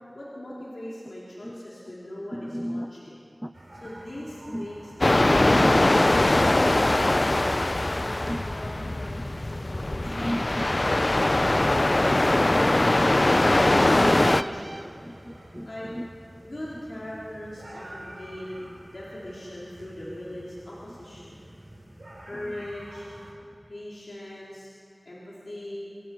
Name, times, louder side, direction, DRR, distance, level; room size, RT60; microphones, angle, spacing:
voice 1, 0.1-3.2 3.7-5.7 6.6-7.6 8.0-10.2 11.4-14.9 15.6-15.9 16.4-21.4 22.2-23.1 23.6-24.7 25.0-25.8, left 1 dB, 85° left, -7 dB, 4.1 m, -40 dB
voice 2, 2.3-2.9 3.4-3.5 4.5-4.6 5.5-5.6 8.3-8.4 10.1-10.8 11.1-11.2 12.6-13.2 14.0-14.4 15.1-15.7 16.0-16.1, equal, 5° right, 12 dB, 0.6 m, -34 dB
sound 1, 3.5-23.3, right 1 dB, 90° right, 7.1 m, -48 dB
sound 2, 5.0-14.4, left 1 dB, 50° left, 0.5 m, -21 dB
sound 3, 14.0-15.4, right 2 dB, 65° right, 0.7 m, -36 dB
26.0 x 17.5 x 6.2 m, 2.5 s
wide cardioid pair, 40°, 0 cm